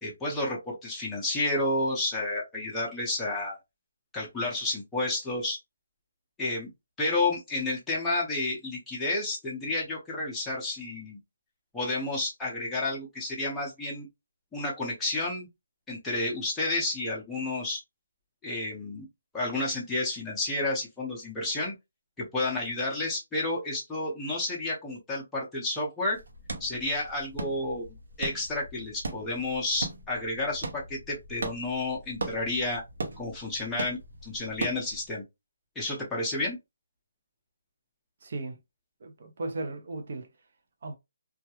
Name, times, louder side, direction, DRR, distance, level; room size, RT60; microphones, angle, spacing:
voice 1, 0.0-3.6 4.1-5.6 6.4-6.7 7.0-11.2 11.7-14.1 14.5-15.5 15.9-17.8 18.4-19.1 19.3-21.7 22.2-26.2 26.6-32.8 33.2-35.2 35.8-36.6, left 2 dB, 5° left, 0.6 m, -31 dB
sound 1, 26.1-35.1, right 2 dB, 75° right, 0.7 m, -39 dB
voice 2, 38.2-38.6 39.0-40.3 40.8-41.0, right 2 dB, 45° right, 0.5 m, -36 dB
2.3 x 2.1 x 2.8 m
hypercardioid pair, 175°, 0 cm